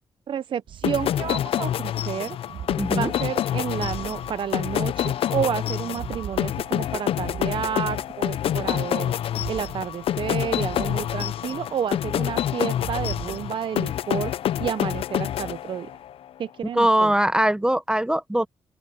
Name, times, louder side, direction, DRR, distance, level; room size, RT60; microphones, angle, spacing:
voice 1, 0.3-2.4 2.9-9.1 9.5-14.3 14.6-15.9 16.4-17.1, right 8 dB, 60° right, 0.5 m, -30 dB
sound 1, 0.7-1.5 2.4-4.9 5.8-8.4 9.3-11.9 12.7-13.5, right 9 dB, 90° right, 1.8 m, -40 dB
sound 2, 0.8-16.1, left 11 dB, 75° left, 0.3 m, -27 dB
voice 2, 2.8-3.1 16.7-18.5, right 1 dB, 10° right, 0.7 m, -21 dB
open air
cardioid pair, 110°, 10 cm